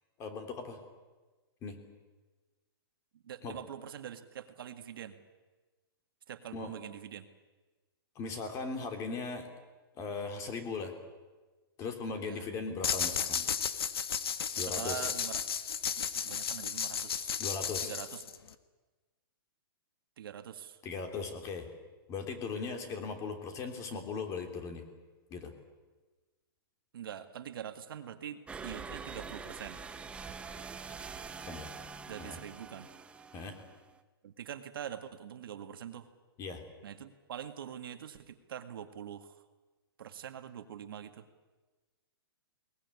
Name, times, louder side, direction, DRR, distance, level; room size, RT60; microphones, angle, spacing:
voice 1, 0.2-0.8 1.6-1.8 3.4-3.6 6.5-6.7 8.1-9.5 9.9-10.9 11.8-13.5 14.6-15.1 17.4-17.9 20.8-21.7 22.1-24.8 25.3-25.5 30.4-31.1 31.5-31.7 32.2-32.4 33.3-33.5 36.4-36.6, left 4 dB, 25° left, 6 dB, 3.3 m, -39 dB
voice 2, 3.1-5.2 6.3-7.3 12.2-12.4 14.6-15.4 16.0-17.4 17.8-18.2 20.2-20.8 26.9-29.8 32.1-32.9 34.2-36.1 36.8-39.4 40.0-41.3, right 9 dB, 65° right, 7 dB, 2.0 m, -44 dB
sound 1, 12.8-18.5, left 7 dB, 75° left, 1.6 m, -34 dB
sound 2, 28.5-34.0, right 5 dB, 10° right, 0.9 m, -45 dB
21.0 x 20.0 x 9.8 m, 1.2 s
hypercardioid pair, 150°, 13 cm